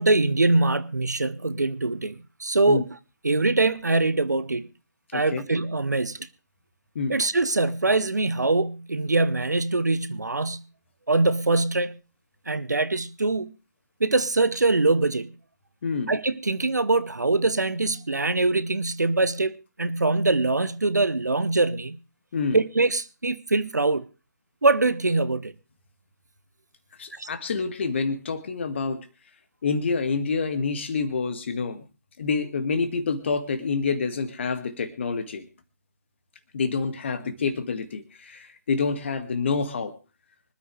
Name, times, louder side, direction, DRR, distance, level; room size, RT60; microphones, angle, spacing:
voice 1, 0.0-2.8 3.2-4.7 5.1-6.2 7.1-10.6 11.1-12.0 12.5-13.5 14.0-15.3 16.1-22.0 22.5-24.0 24.6-25.5 27.2-27.3, right 2 dB, 75° right, 1.1 m, -23 dB
voice 2, 5.1-5.4 7.0-7.2 15.8-16.1 22.3-22.6 27.0-29.1 29.6-31.8 32.2-35.5 36.5-39.9, left 4 dB, 40° left, 2.0 m, -27 dB
25.0 x 9.7 x 3.3 m
figure-of-eight pair, 145°, 9 cm